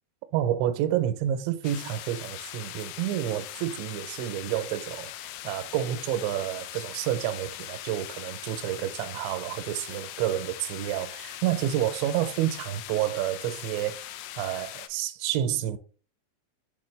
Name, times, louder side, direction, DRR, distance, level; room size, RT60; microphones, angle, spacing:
voice 1, 0.3-14.0 14.4-15.8, right 12 dB, 85° right, 2.8 m, -29 dB
sound 1, 1.6-14.9, left 13 dB, 85° left, 3.0 m, -41 dB
sound 2, 3.3-11.8, left 6 dB, 65° left, 3.4 m, -55 dB
7.7 x 4.3 x 3.2 m
omnidirectional pair, 5.4 m